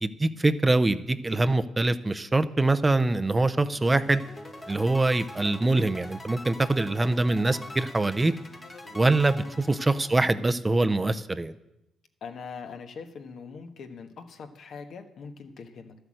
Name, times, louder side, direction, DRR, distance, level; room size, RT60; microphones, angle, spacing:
voice 1, 0.0-4.2 4.7-8.3 8.9-11.6, right 2 dB, 20° right, 11 dB, 0.6 m, -24 dB
sound 1, 3.7-6.7 7.1-10.1, left 3 dB, 80° left, 3.8 m, -51 dB
sound 2, 4.1-10.4, left 1 dB, 20° left, 1.2 m, -44 dB
voice 2, 12.2-16.0, left 5 dB, 65° left, 7 dB, 1.3 m, -42 dB
12.0 x 8.0 x 7.6 m, 0.87 s
cardioid pair, 90°, 0 cm